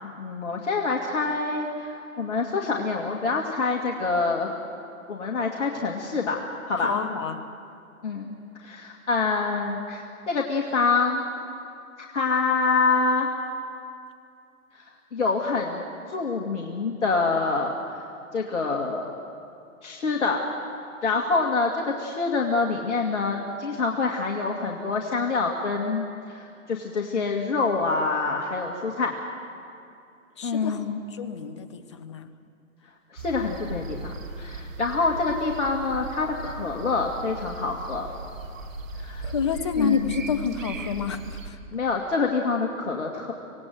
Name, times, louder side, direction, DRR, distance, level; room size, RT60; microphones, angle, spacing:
voice 1, 0.2-4.5 5.1-6.4 6.7-7.0 8.0-8.3 8.6-11.3 12.0-13.3 14.7-14.8 15.1-15.8 16.1-18.0 18.3-19.1 19.8-20.4 21.0-29.1 30.4-31.0 33.1-38.1 39.0-39.3 39.8-40.1 41.7-43.3, left 4 dB, 50° left, 0 dB, 2.1 m, -26 dB
voice 2, 6.8-7.4 30.4-30.8 31.1-32.3 39.2-41.6, left 6 dB, 20° left, 10 dB, 0.6 m, -29 dB
sound 1, 33.2-41.5, right 3 dB, 60° right, 2.4 m, -38 dB
25.5 x 18.0 x 7.9 m, 2.6 s
hypercardioid pair, 145°, 44 cm